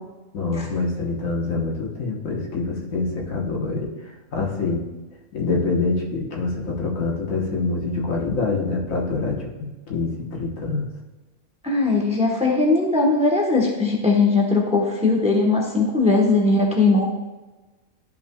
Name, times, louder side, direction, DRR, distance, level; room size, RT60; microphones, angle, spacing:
voice 1, 0.3-4.9 5.3-9.5 9.9-10.9, left 3 dB, 75° left, -1 dB, 1.6 m, -25 dB
voice 2, 11.6-17.1, left 3 dB, 5° right, -1 dB, 0.9 m, -19 dB
12.0 x 5.4 x 2.3 m, 1.2 s
omnidirectional pair, 1.4 m